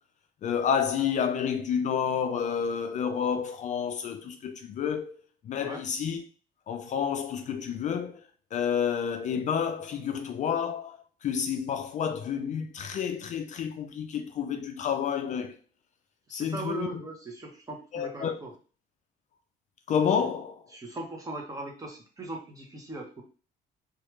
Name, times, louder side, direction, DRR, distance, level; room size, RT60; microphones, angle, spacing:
voice 1, 0.4-6.2 6.7-8.2 8.5-15.6 16.3-17.0 17.9-18.4 19.9-20.6, left 7 dB, 45° left, 0.4 m, -30 dB
voice 2, 16.3-18.5 20.2-20.3 20.7-23.2, right 2 dB, 20° right, 0.9 m, -39 dB
3.0 x 2.4 x 3.1 m
cardioid pair, 110°, 17 cm